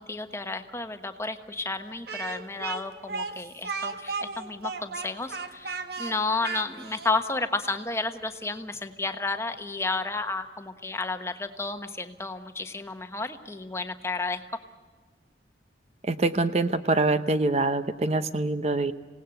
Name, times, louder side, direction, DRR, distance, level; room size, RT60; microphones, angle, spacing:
voice 1, 0.0-14.4, left 3 dB, 15° left, 8 dB, 1.2 m, -32 dB
Speech, 2.1-7.2, right 4 dB, 60° right, 1.5 m, -35 dB
voice 2, 16.1-18.9, right 2 dB, 35° right, 11 dB, 0.7 m, -25 dB
26.5 x 18.0 x 7.9 m, 1.5 s
head